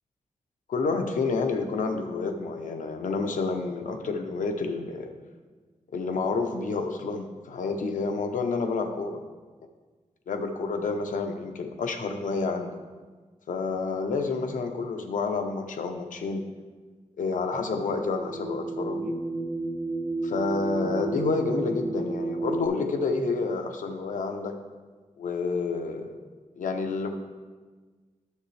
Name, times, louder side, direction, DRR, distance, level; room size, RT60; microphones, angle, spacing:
voice 1, 0.7-5.1 5.9-9.2 10.3-12.8 13.5-16.5 17.2-19.1 20.2-24.5 25.2-26.2 26.6-27.1, left 4 dB, 90° left, 5 dB, 0.7 m, -29 dB
sound 1, 18.1-22.7, right 2 dB, 45° right, 1.9 m, -32 dB
9.5 x 6.8 x 3.3 m, 1.4 s
wide cardioid pair, 165°, 13 cm